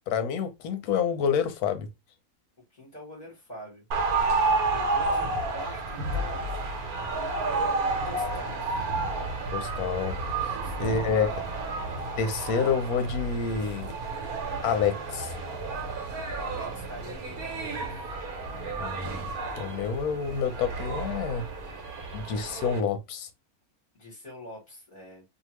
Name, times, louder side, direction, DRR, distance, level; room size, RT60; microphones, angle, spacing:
voice 1, 0.1-1.9 9.5-10.2 10.4-11.3 12.2-13.9 14.6-15.3 18.8-19.3 19.6-21.5 22.1-23.3, left 6 dB, 90° left, 1.1 m, -28 dB
voice 2, 2.7-3.8 4.7-6.5 7.1-8.6 10.5-11.3 16.3-17.9 23.9-25.2, equal, 30° left, 1.3 m, -44 dB
sound 1, 3.9-22.8, right 3 dB, 80° right, 1.2 m, -31 dB
2.7 x 2.4 x 3.1 m
omnidirectional pair, 1.6 m